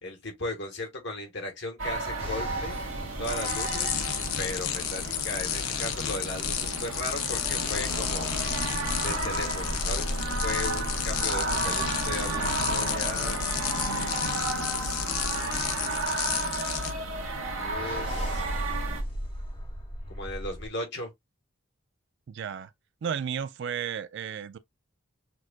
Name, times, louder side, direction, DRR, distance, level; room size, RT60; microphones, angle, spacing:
voice 1, 0.0-2.8 3.2-3.9 4.4-8.3 9.0-13.4 14.6-16.0 17.5-18.5 20.1-21.1, left 2 dB, 55° left, 1.5 m, -37 dB
sound 1, 1.8-19.0, right 3 dB, 70° right, 1.3 m, -33 dB
sound 2, 2.2-5.7 7.2-15.2 17.6-20.7, equal, 25° left, 0.9 m, -38 dB
sound 3, 3.2-16.9, left 8 dB, 85° left, 0.8 m, -31 dB
voice 2, 22.3-22.7 23.0-24.6, right 7 dB, 55° right, 0.3 m, -33 dB
6.1 x 2.5 x 2.4 m
head